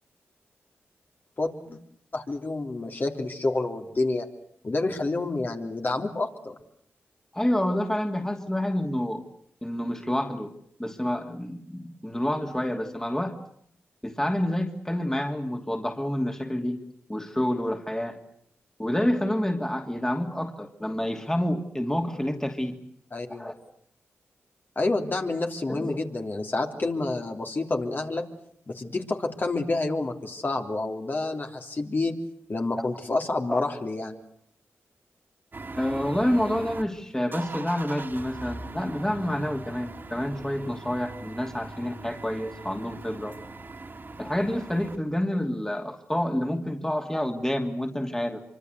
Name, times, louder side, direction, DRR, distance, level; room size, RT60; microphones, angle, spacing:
voice 1, 1.4-1.8 2.1-4.3 4.6-6.5 23.1-23.5 24.7-28.2 28.7-32.2 32.5-34.2, left 2 dB, 45° left, 3 dB, 3.3 m, -28 dB
voice 2, 7.3-9.2 9.6-10.5 10.8-13.3 14.0-16.8 17.1-18.2 18.8-22.7 23.3-23.5 25.7-26.0 32.8-32.9 33.5-33.7 35.7-43.4 44.2-48.4, left 1 dB, 10° left, 5 dB, 2.7 m, -28 dB
sound 1, 35.5-36.8 37.2-45.0, right 2 dB, 45° right, 2.8 m, -41 dB
25.0 x 24.5 x 8.1 m, 0.66 s
cardioid pair, 55°, 5 cm